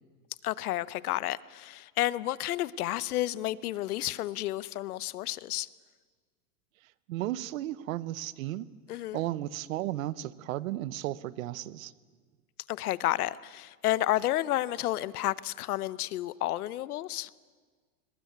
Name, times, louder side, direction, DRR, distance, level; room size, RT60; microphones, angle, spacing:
voice 1, 0.4-5.7 8.9-9.2 12.7-17.3, left 15 dB, 80° left, 0.9 m, -31 dB
voice 2, 7.1-8.7 9.1-11.9, right 14 dB, 65° right, 1.0 m, -34 dB
22.5 x 19.5 x 9.5 m
supercardioid pair, 155°, 44 cm